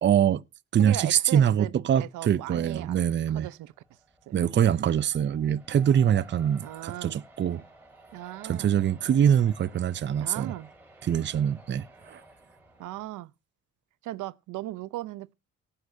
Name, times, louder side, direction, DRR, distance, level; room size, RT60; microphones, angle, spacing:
voice 1, 0.0-0.4 0.7-3.5 4.3-7.6 8.4-10.5 11.0-12.2, right 9 dB, 40° right, 0.6 m, -24 dB
voice 2, 0.8-3.7 4.3-4.4 6.6-7.2 8.1-8.7 10.2-10.7 12.8-13.3 14.0-15.3, right 16 dB, 85° right, 0.7 m, -38 dB
sound 1, 3.1-13.1, right 2 dB, 5° right, 5.8 m, -54 dB
18.0 x 8.4 x 2.7 m
cardioid pair, 90°, 30 cm